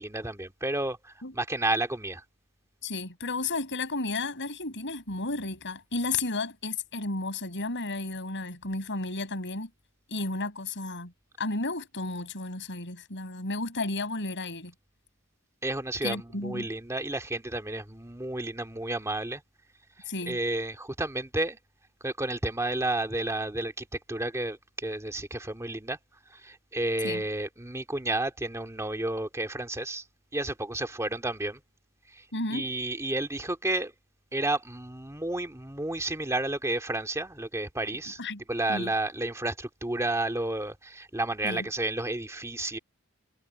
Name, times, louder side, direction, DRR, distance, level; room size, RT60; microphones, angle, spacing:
voice 1, 0.0-2.2 15.6-19.4 20.3-21.6 22.0-26.0 26.3-30.0 30.3-31.6 32.5-33.9 34.3-38.2 38.5-42.8, right 2 dB, 15° right, 2.2 m, -31 dB
voice 2, 2.8-9.7 10.1-11.1 11.4-14.7 16.0-16.7 20.1-20.4 27.0-27.2 32.3-32.7 38.2-38.4 38.7-38.9 41.4-41.7, left 3 dB, 55° left, 7.9 m, -33 dB
head